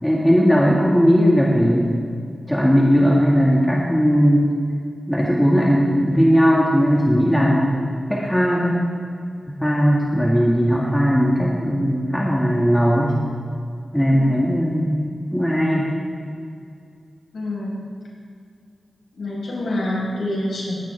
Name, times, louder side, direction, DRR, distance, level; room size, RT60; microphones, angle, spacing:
voice 1, 0.0-2.0 2.5-4.5 5.1-7.8 8.1-8.8 9.5-13.2 13.9-14.9 15.3-15.9, equal, 5° left, -5 dB, 2.0 m, -18 dB
voice 2, 17.3-17.8 19.2-20.7, left 1 dB, 70° left, -4 dB, 5.1 m, -26 dB
21.0 x 17.0 x 3.5 m, 2.4 s
wide cardioid pair, 180°, 0 cm